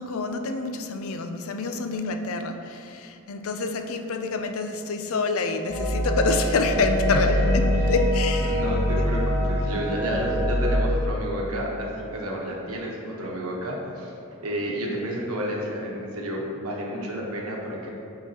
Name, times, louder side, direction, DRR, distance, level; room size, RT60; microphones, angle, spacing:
voice 1, 0.0-8.6 9.0-9.1, left 4 dB, 70° left, 6 dB, 0.5 m, -27 dB
sound 1, 5.7-10.8, equal, 10° right, 1.4 m, -24 dB
voice 2, 8.4-14.1 14.4-17.9, equal, 85° right, -2 dB, 1.1 m, -31 dB
8.6 x 4.8 x 2.8 m, 2.7 s
head